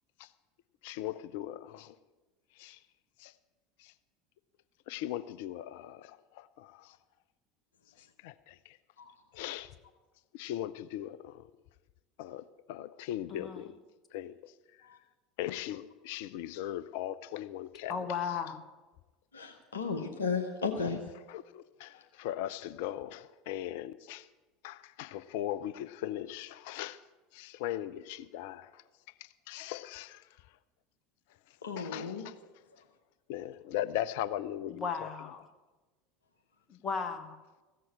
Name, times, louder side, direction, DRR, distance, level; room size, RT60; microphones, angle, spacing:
voice 1, 0.8-2.0 2.6-2.8 3.2-3.3 3.8-3.9 4.9-7.0 8.0-8.8 9.3-9.7 10.3-11.5 12.2-13.8 14.1-14.5 15.4-18.0 21.3-24.3 24.6-27.0 27.3-28.8 29.2-30.3 31.8-32.3 33.3-35.1, left 12 dB, 55° left, 0.5 m, -39 dB
voice 2, 13.3-13.7 17.9-18.6 34.8-35.4 36.8-37.4, left 6 dB, 30° left, 1.5 m, -35 dB
voice 3, 19.3-21.0 21.9-22.0 31.6-32.2, left 5 dB, 70° left, 1.0 m, -34 dB
15.0 x 7.6 x 8.4 m
figure-of-eight pair, 75°, 0 cm